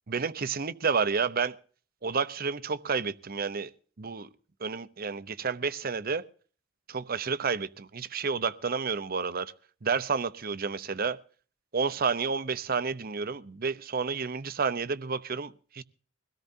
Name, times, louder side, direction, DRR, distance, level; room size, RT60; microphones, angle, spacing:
voice 1, 0.1-1.5 2.0-3.7 4.0-4.3 4.6-6.3 6.9-9.5 9.8-11.2 11.7-15.8, right 5 dB, 50° right, 0.8 m, -30 dB
22.5 x 17.0 x 2.7 m
head